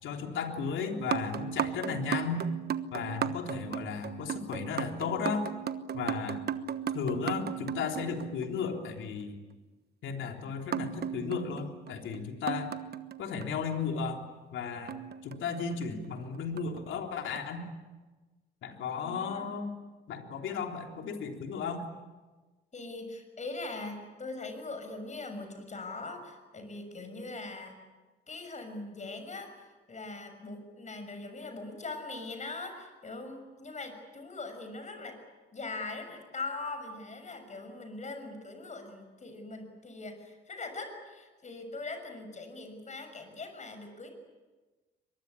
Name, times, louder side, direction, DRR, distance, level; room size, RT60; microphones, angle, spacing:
voice 1, 0.0-2.4 2.9-5.5 5.9-6.4 6.9-9.4 10.0-12.7 13.2-14.2 14.5-17.6 18.6-19.7 20.1-21.8, left 5 dB, 75° left, 3 dB, 3.6 m, -34 dB
sound 1, 1.0-8.7 10.7-13.7 14.9-15.9 16.6-16.8 17.4-17.5, right 8 dB, 55° right, 1.2 m, -36 dB
voice 2, 19.0-19.5 22.7-27.8 28.3-35.2 35.5-44.1, left 3 dB, 35° left, 7 dB, 6.7 m, -41 dB
23.5 x 22.0 x 9.8 m, 1.2 s
cardioid pair, 90°, 20 cm